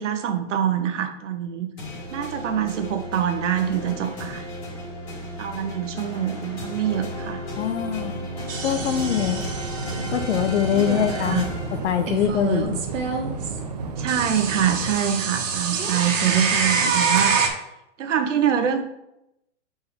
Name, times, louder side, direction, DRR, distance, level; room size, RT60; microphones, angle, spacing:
voice 1, 0.0-1.7 2.1-4.4 5.4-7.4 10.7-11.4 14.0-17.6 18.0-18.8, right 9 dB, 70° right, 7 dB, 1.0 m, -25 dB
sound 1, 1.8-12.4, equal, 25° left, 1.8 m, -34 dB
voice 2, 7.6-8.3 8.6-9.4 10.1-11.5 11.7-12.8, left 9 dB, 65° left, 11 dB, 0.7 m, -23 dB
sound 2, 8.5-11.4 12.1-13.6 14.1-17.5, right 5 dB, 90° right, 1.4 m, -26 dB
sound 3, 8.7-14.9, right 4 dB, 35° right, 0.4 m, -33 dB
6.6 x 4.3 x 3.5 m, 0.85 s
hypercardioid pair, 175°, 37 cm